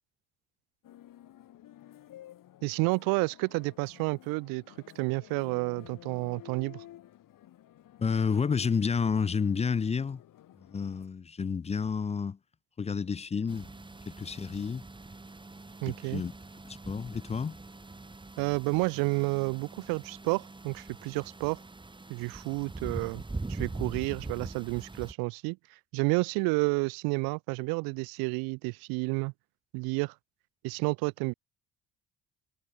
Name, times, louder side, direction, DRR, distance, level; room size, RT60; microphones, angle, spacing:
sound 1, 0.8-11.1, left 13 dB, 65° left, 2.0 m, -52 dB
voice 1, 2.6-6.8 15.8-16.2 18.4-21.6 22.1-23.2 23.5-25.6 25.9-29.3 29.7-30.1 30.6-31.3, right 29 dB, 90° right, 0.5 m, -30 dB
voice 2, 8.0-10.2 10.6-12.4 12.8-13.7 14.1-14.8 15.9-16.3 16.6-17.6, left 6 dB, 20° left, 0.4 m, -30 dB
sound 2, 13.5-25.1, right 2 dB, 15° right, 1.4 m, -43 dB
supercardioid pair, 70°, 35 cm